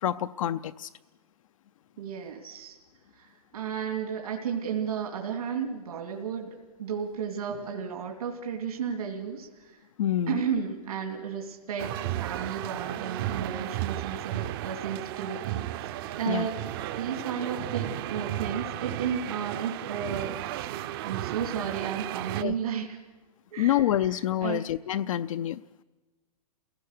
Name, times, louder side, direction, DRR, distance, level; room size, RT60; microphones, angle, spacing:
voice 1, 0.0-0.9 10.0-10.4 16.3-16.5 22.4-22.5 23.6-25.6, left 12 dB, 60° left, 10 dB, 0.6 m, -27 dB
voice 2, 2.0-2.8 3.1-9.8 10.3-16.6 17.0-23.0 23.5-24.6, right 7 dB, 75° right, 2 dB, 2.8 m, -33 dB
sound 1, 11.8-22.4, right 13 dB, 40° right, 0.8 m, -34 dB
28.5 x 17.5 x 6.7 m, 1.3 s
hypercardioid pair, 150°, 19 cm